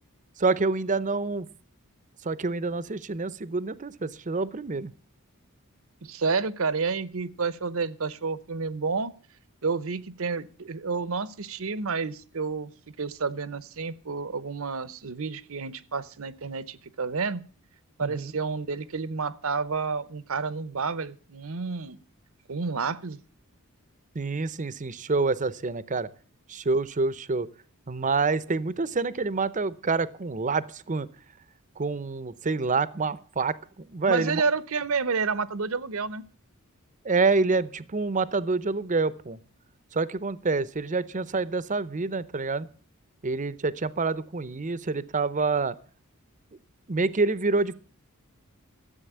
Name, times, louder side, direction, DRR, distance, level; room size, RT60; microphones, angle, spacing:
voice 1, 0.4-1.5 2.2-4.9 18.0-18.3 24.1-26.1 26.5-27.5 27.9-31.1 31.8-34.4 37.0-39.4 39.9-42.7 43.2-45.8 46.9-47.7, right 3 dB, 35° right, 17 dB, 0.7 m, -27 dB
voice 2, 6.0-9.1 9.6-12.7 13.0-17.4 18.0-22.0 22.5-23.2 34.1-36.2, right 4 dB, 65° right, 17 dB, 0.8 m, -30 dB
13.5 x 8.0 x 8.0 m, 0.40 s
head